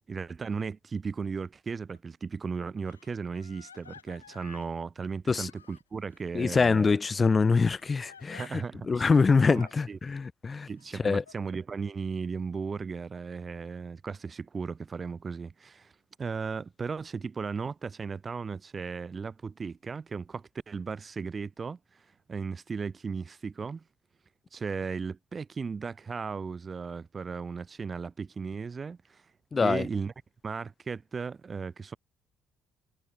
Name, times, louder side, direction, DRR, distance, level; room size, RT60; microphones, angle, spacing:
voice 1, 0.1-7.0 8.4-9.1 9.5-10.0 10.7-15.9 16.2-23.8 24.5-29.2 29.6-30.1 30.4-32.0, right 5 dB, 30° right, 2.4 m, -36 dB
Crying sobbing, 1.9-2.0 2.9-4.7 5.4-6.3 7.7-8.5 9.3-9.7 10.8-11.4, left 6 dB, 85° left, 5.0 m, -53 dB
voice 2, 6.3-10.7 11.0-11.2 29.5-29.8, left 4 dB, 30° left, 0.5 m, -24 dB
figure-of-eight pair, 50°, 0 cm